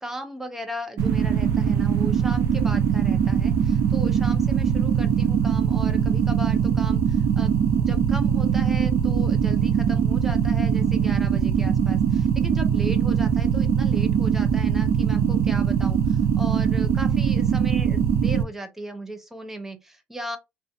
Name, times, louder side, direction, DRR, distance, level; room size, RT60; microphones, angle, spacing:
voice 1, 0.0-20.4, equal, 10° right, 0.5 m, -37 dB
sound 1, 1.0-18.4, right 7 dB, 70° right, 0.4 m, -21 dB
2.5 x 2.2 x 2.6 m
cardioid pair, 135°, 4 cm